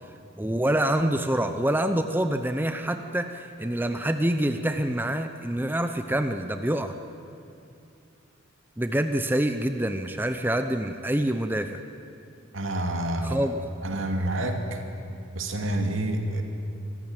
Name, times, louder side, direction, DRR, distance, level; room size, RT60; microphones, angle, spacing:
voice 1, 0.4-6.9 8.8-11.8 13.2-13.6, right 1 dB, 10° right, 7 dB, 0.7 m, -26 dB
voice 2, 12.5-13.5 13.8-14.8 15.3-16.4, right 1 dB, 75° right, 4 dB, 2.5 m, -28 dB
25.0 x 15.0 x 9.1 m, 2.6 s
head